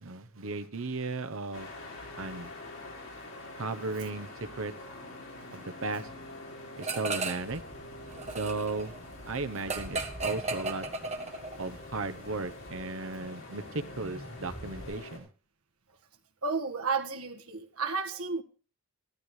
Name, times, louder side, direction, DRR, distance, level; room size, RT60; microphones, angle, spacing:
voice 1, 0.0-1.7 2.2-2.5 3.6-4.7 5.5-6.1 6.8-7.6 8.3-8.9 9.2-10.9 11.6-15.3, right 3 dB, 65° right, 0.9 m, -35 dB
sound 1, 1.5-15.2, left 2 dB, 60° left, 3.8 m, -46 dB
sound 2, 6.8-7.6 7.9-11.7, right 3 dB, 30° right, 1.5 m, -35 dB
sound 3, 7.5-15.0, equal, 5° right, 2.0 m, -48 dB
voice 2, 16.4-18.4, right 4 dB, 80° right, 1.5 m, -32 dB
15.5 x 12.5 x 3.2 m
head